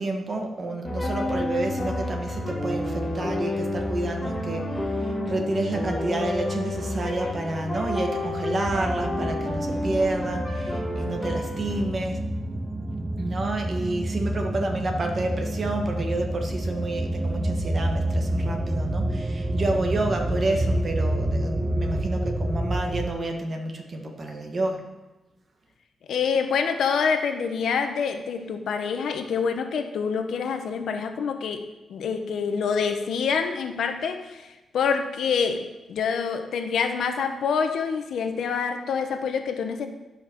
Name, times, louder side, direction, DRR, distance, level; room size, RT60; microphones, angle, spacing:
voice 1, 0.0-12.2 13.2-24.8, right 2 dB, 30° right, 3 dB, 1.3 m, -29 dB
sound 1, 0.8-11.8, left 1 dB, 5° left, 1.7 m, -30 dB
sound 2, 8.7-23.1, right 1 dB, 15° right, 0.6 m, -28 dB
voice 2, 26.1-39.9, left 6 dB, 75° left, 7 dB, 0.9 m, -26 dB
11.5 x 5.4 x 6.0 m, 1.1 s
wide cardioid pair, 175°, 0 cm